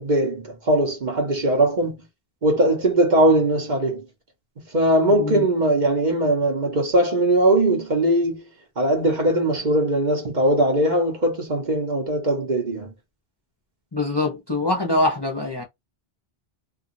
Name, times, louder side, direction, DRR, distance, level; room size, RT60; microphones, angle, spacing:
voice 1, 0.0-2.0 2.4-4.1 4.6-8.5 8.8-12.9, right 1 dB, 50° right, 1.2 m, -20 dB
voice 2, 5.1-5.5 13.9-15.6, left 2 dB, 30° left, 0.7 m, -24 dB
2.6 x 2.4 x 2.6 m
omnidirectional pair, 1.0 m